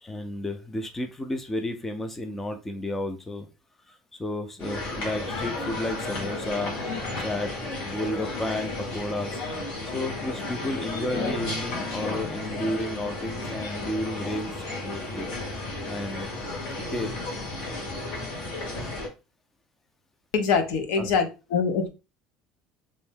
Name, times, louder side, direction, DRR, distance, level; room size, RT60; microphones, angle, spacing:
voice 1, 0.0-3.5 3.9-6.7 7.2-7.5 7.8-9.3 9.9-15.3 15.8-16.3 16.9-17.1 21.0-21.1, left 1 dB, 10° left, 0.4 m, -32 dB
sound 1, 4.6-19.1, left 2 dB, 60° left, 1.6 m, -33 dB
voice 2, 20.3-21.9, left 5 dB, 80° left, 0.7 m, -24 dB
3.1 x 2.7 x 3.5 m
cardioid pair, 150°, 2 cm